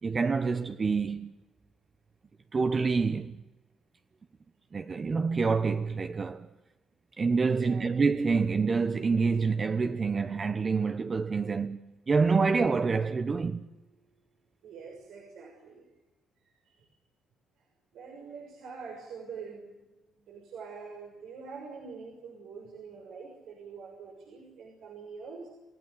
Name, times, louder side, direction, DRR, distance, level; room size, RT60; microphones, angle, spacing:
voice 1, 0.0-1.3 2.5-3.4 4.7-6.5 7.2-11.8 12.1-13.7, right 4 dB, 35° right, 1.1 m, -27 dB
voice 2, 7.4-7.9 14.6-15.9 16.4-16.9 17.6-17.7 17.9-19.9 20.2-25.5, right 5 dB, 80° right, 6.3 m, -45 dB
Marimba xylophone, 12.6-14.4, left 1 dB, 55° left, 2.9 m, -56 dB
29.0 x 15.5 x 9.5 m
cardioid pair, 90°, 0 cm